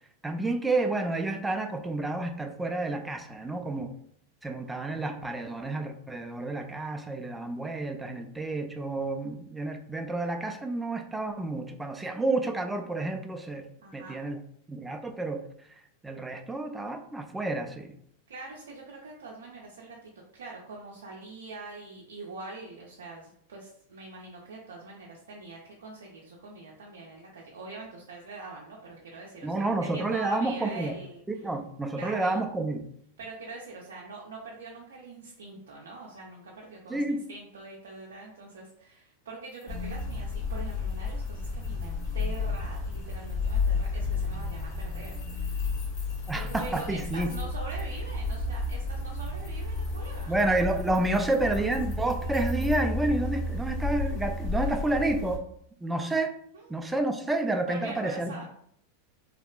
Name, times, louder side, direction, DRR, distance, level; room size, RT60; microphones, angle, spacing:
voice 1, 0.2-3.9 4.4-13.7 13.9-14.4 14.7-15.4 16.0-17.9 29.4-30.9 31.3-32.8 36.9-37.2 46.3-47.3 50.3-55.4 55.8-56.4 56.7-58.4, right 2 dB, 10° right, 5 dB, 0.3 m, -30 dB
voice 2, 13.8-14.2 18.3-31.4 31.9-32.5 33.2-45.6 46.3-50.4 51.3-51.6 54.5-54.7 56.5-56.8 57.7-58.4, right 3 dB, 80° right, -2 dB, 0.4 m, -44 dB
sound 1, 39.5-52.8, left 3 dB, 75° left, 1.2 m, -54 dB
sound 2, 39.7-55.4, left 3 dB, 40° left, 1.0 m, -32 dB
2.7 x 2.1 x 2.4 m, 0.67 s
hypercardioid pair, 105°, 0 cm